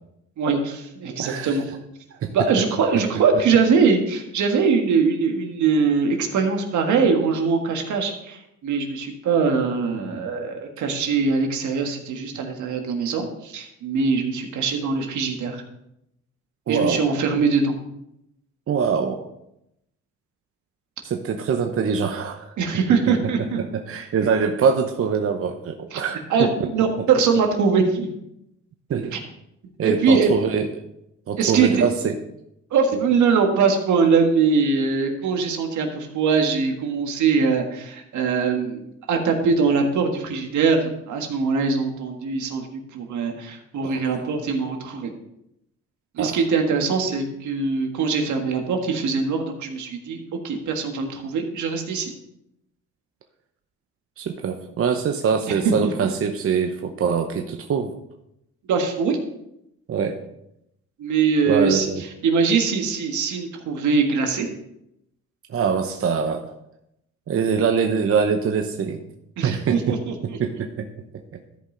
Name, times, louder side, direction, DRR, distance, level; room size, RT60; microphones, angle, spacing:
voice 1, 0.4-1.6 2.3-15.6 16.7-17.7 22.6-23.6 25.9-26.0 26.3-28.1 29.1-29.2 29.8-30.3 31.4-31.9 32.7-45.1 46.2-50.2 50.4-52.1 55.5-55.9 58.7-59.2 61.0-61.9 62.2-64.5 69.4-70.4, right 5 dB, 75° right, 4 dB, 1.6 m, -22 dB
voice 2, 1.2-1.6 2.2-2.3 2.9-3.0 16.7-17.1 18.7-19.3 21.0-22.5 23.1-26.7 27.0-27.1 28.9-29.2 29.8-30.7 31.3-32.2 43.8-44.0 46.2-46.4 54.2-57.9 59.9-60.2 61.5-62.0 65.5-66.5 67.3-69.0 69.4-70.0 70.4-70.9, right 6 dB, 50° right, 5 dB, 0.8 m, -24 dB
13.5 x 5.4 x 3.8 m, 0.82 s
cardioid pair, 90°, 30 cm